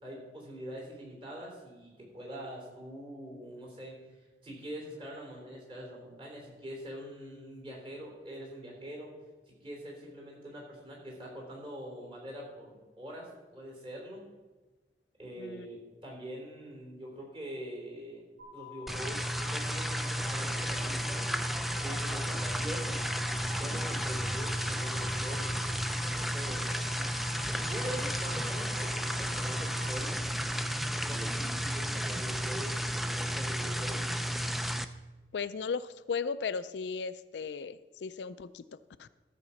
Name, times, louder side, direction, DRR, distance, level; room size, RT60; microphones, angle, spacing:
voice 1, 0.0-4.0 4.4-9.1 9.5-14.2 15.2-18.2 18.5-21.3 21.8-23.1 23.5-25.5 26.1-26.7 27.4-30.2 31.0-34.1, equal, 30° right, -1 dB, 3.6 m, -44 dB
sound 1, 18.4-29.8, left 7 dB, 85° right, 2.9 m, -48 dB
sound 2, 18.9-34.8, equal, ahead, 0.4 m, -33 dB
voice 2, 35.3-38.6 39.0-39.1, left 5 dB, 80° left, 14 dB, 0.4 m, -36 dB
13.5 x 5.1 x 7.0 m, 1.2 s
head